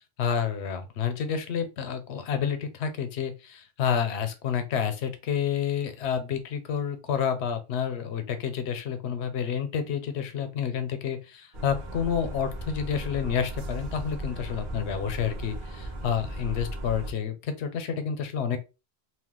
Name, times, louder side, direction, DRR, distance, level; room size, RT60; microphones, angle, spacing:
voice 1, 0.2-18.6, left 7 dB, 90° left, 0.9 m, -29 dB
sound 1, 11.5-17.1, right 1 dB, 55° right, 0.8 m, -36 dB
2.4 x 2.2 x 3.6 m
omnidirectional pair, 1.1 m